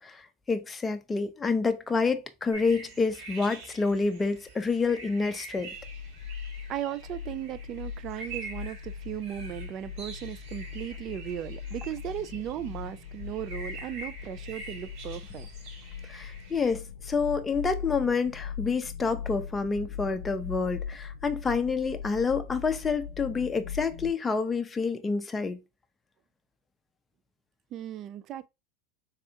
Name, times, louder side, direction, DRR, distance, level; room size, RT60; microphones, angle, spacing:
voice 1, 0.0-5.7 16.1-25.6, left 4 dB, 15° left, 0.6 m, -28 dB
sound 1, 2.5-16.7, right 3 dB, 65° right, 2.2 m, -46 dB
sound 2, 5.7-24.1, left 7 dB, 75° left, 0.6 m, -40 dB
voice 2, 6.7-15.5 27.7-28.5, right 11 dB, 45° right, 0.4 m, -36 dB
3.5 x 3.3 x 2.7 m
hypercardioid pair, 110°, 0 cm